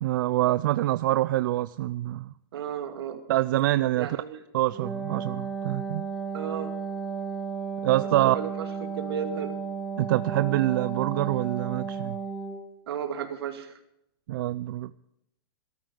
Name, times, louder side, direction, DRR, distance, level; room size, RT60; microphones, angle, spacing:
voice 1, 0.0-2.3 3.3-4.1 4.5-6.1 7.8-8.4 10.0-12.2 14.3-14.9, right 15 dB, 55° right, 14 dB, 0.4 m, -25 dB
voice 2, 2.5-3.2 3.9-4.4 6.3-6.7 8.2-9.5 12.9-13.7, right 8 dB, 80° right, 5 dB, 2.4 m, -34 dB
Wind instrument woodwind instrument, 4.7-12.7, right 5 dB, 5° right, 1.4 m, -34 dB
18.5 x 13.5 x 3.8 m, 0.80 s
supercardioid pair, 160°, 13 cm